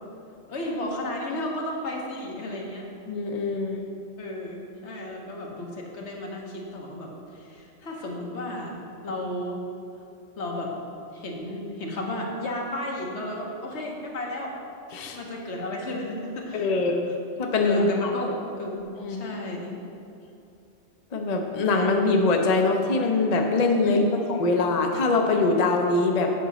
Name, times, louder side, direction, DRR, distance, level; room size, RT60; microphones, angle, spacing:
voice 1, 0.5-2.9 4.2-8.7 9.0-9.6 10.4-10.7 11.1-14.5 15.0-17.1 17.6-19.8 23.8-24.5, left 1 dB, 65° left, -1 dB, 1.4 m, -33 dB
voice 2, 3.1-3.8 14.9-15.2 16.5-17.1 17.4-18.1 19.0-19.3 21.1-26.3, left 3 dB, 45° left, 2 dB, 0.6 m, -23 dB
8.5 x 6.0 x 4.0 m, 2.6 s
omnidirectional pair, 1.3 m